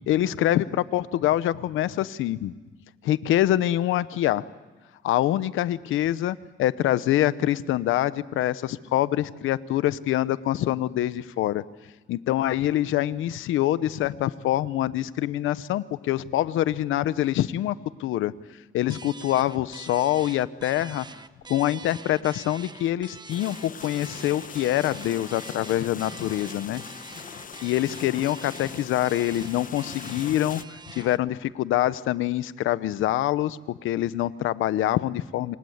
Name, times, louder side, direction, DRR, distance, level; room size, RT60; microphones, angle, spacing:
voice 1, 0.1-2.5 3.0-4.4 5.0-11.6 12.1-18.3 18.7-21.1 21.5-26.8 27.6-35.6, left 13 dB, 85° left, 15 dB, 0.9 m, -25 dB
sound 1, 18.9-31.3, right 4 dB, 20° right, 1.1 m, -45 dB
sound 2, 23.3-30.6, left 7 dB, 45° left, 1.0 m, -41 dB
28.0 x 25.5 x 8.1 m, 1.3 s
cardioid pair, 90°, 20 cm